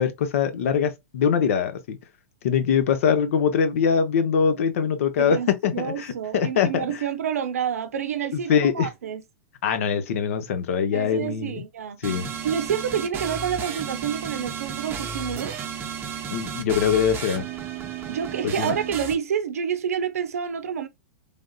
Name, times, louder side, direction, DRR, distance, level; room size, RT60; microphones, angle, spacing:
voice 1, 0.0-2.0 2.4-6.9 8.3-8.9 9.6-11.6 12.0-12.3 16.3-17.5 18.4-18.7, left 7 dB, 70° left, 0.8 m, -23 dB
voice 2, 5.2-9.2 10.9-12.0 12.4-15.6 18.1-20.9, right 8 dB, 90° right, 0.6 m, -28 dB
sound 1, 12.0-19.1, right 6 dB, 30° right, 0.7 m, -33 dB
3.4 x 2.6 x 2.2 m
hypercardioid pair, 125°, 8 cm